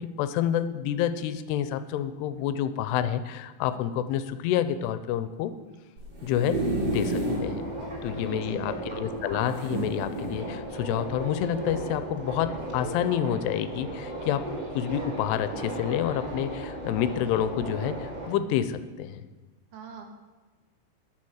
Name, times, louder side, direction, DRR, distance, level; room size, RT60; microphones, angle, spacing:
voice 1, 0.0-5.5 6.2-7.7 8.0-14.5 14.7-19.2, left 10 dB, 90° left, 12 dB, 2.7 m, -28 dB
sound 1, 6.0-7.5 8.0-8.1 8.2-8.3 9.5-10.4 11.1-11.3, right 2 dB, 40° right, 3.0 m, -30 dB
Subway metro underground, 6.9-18.3, right 1 dB, 20° right, 1.2 m, -36 dB
voice 2, 8.2-9.0 19.7-20.1, right 5 dB, 75° right, 3 dB, 3.0 m, -42 dB
10.0 x 8.5 x 6.4 m, 1.2 s
omnidirectional pair, 4.7 m